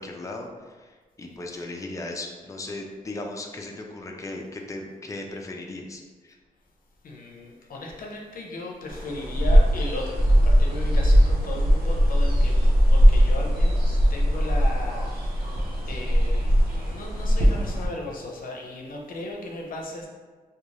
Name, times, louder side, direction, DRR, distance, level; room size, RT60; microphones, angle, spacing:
voice 1, 0.0-6.4, left 2 dB, 20° left, 1 dB, 0.4 m, -37 dB
voice 2, 7.0-15.5 15.9-20.1, left 2 dB, 65° left, -1 dB, 0.6 m, -36 dB
sound 1, 8.9-17.9, equal, 75° right, 0.7 m, -20 dB
2.4 x 2.3 x 3.1 m, 1.4 s
cardioid pair, 65°, 15 cm